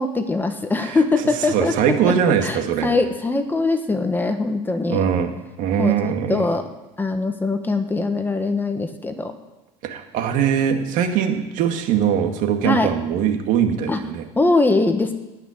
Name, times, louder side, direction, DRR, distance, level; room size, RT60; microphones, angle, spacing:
voice 1, 0.0-2.1 2.4-5.0 5.8-6.6 7.0-9.3 12.6-12.9 13.9-14.0 14.3-15.1, left 3 dB, 15° left, 7 dB, 1.2 m, -22 dB
voice 2, 1.4-3.0 4.9-5.3 5.6-6.5 9.8-14.2, right 8 dB, 65° right, 5 dB, 2.0 m, -21 dB
17.5 x 6.0 x 9.8 m, 1.1 s
cardioid pair, 125°, 14 cm